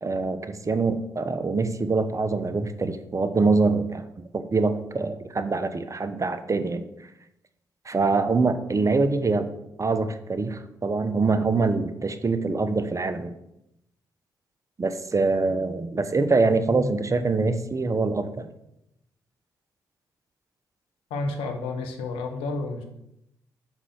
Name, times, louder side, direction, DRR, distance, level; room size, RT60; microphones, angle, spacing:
voice 1, 0.0-4.1 4.3-6.8 7.9-9.5 9.8-13.3 14.8-18.5, right 3 dB, 35° right, 11 dB, 1.0 m, -24 dB
voice 2, 21.1-22.8, left 3 dB, 80° left, 5 dB, 1.1 m, -30 dB
6.0 x 5.5 x 6.9 m, 0.83 s
hypercardioid pair, 40°, 9 cm